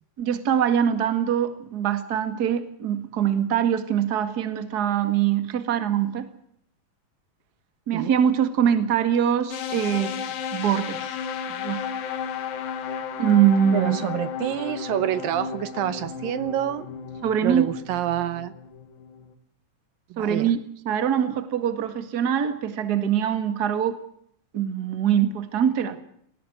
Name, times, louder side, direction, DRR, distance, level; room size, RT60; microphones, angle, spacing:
voice 1, 0.2-6.3 7.9-10.2 10.5-11.2 11.5-11.8 13.2-14.0 17.2-17.7 20.2-24.0 24.5-26.0, right 9 dB, 35° right, 10 dB, 1.8 m, -23 dB
sound 1, 9.5-19.3, left 7 dB, 75° left, 3.4 m, -33 dB
voice 2, 13.7-16.9 17.4-18.5 20.1-20.5, right 11 dB, 75° right, 14 dB, 2.7 m, -27 dB
19.5 x 18.0 x 8.1 m, 0.67 s
omnidirectional pair, 4.2 m